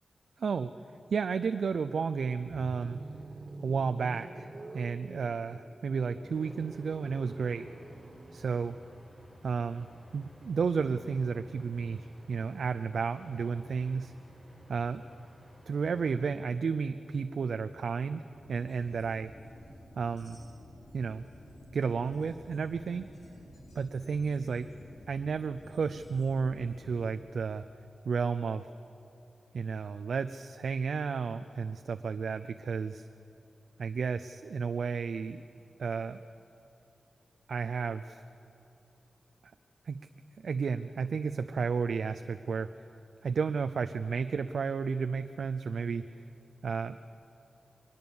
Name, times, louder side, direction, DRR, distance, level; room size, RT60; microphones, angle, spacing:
voice 1, 0.4-0.7 1.1-3.0 3.6-7.7 8.3-8.8 9.4-9.9 10.1-14.1 14.7-15.0 15.7-18.2 18.5-19.3 20.0-20.4 20.9-21.2 21.7-23.1 23.8-24.7 25.1-27.7 28.0-28.7 29.5-33.1 33.8-35.4 35.8-36.2 37.5-38.2 39.9-40.0 40.4-42.7 43.2-46.1 46.6-47.0, right 5 dB, 75° right, 9 dB, 0.5 m, -32 dB
sound 1, 2.2-14.2 15.4-19.0, right 2 dB, 30° right, 1.1 m, -50 dB
sound 2, 6.2-16.2, equal, 30° left, 5.7 m, -55 dB
sound 3, 18.3-27.1, equal, 65° left, 7.6 m, -52 dB
22.5 x 20.0 x 7.1 m, 2.8 s
wide cardioid pair, 140°, 0 cm